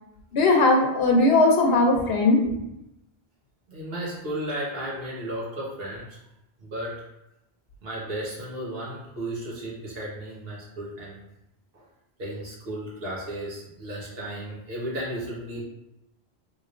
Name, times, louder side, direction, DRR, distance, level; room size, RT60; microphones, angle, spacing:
voice 1, 0.3-2.4, left 2 dB, 75° left, 2 dB, 0.9 m, -19 dB
voice 2, 3.7-6.2 6.6-7.1 7.8-11.2 11.7-11.8 12.2-15.6, right 1 dB, 65° right, -5 dB, 1.3 m, -34 dB
3.6 x 3.1 x 2.5 m, 0.89 s
omnidirectional pair, 1.1 m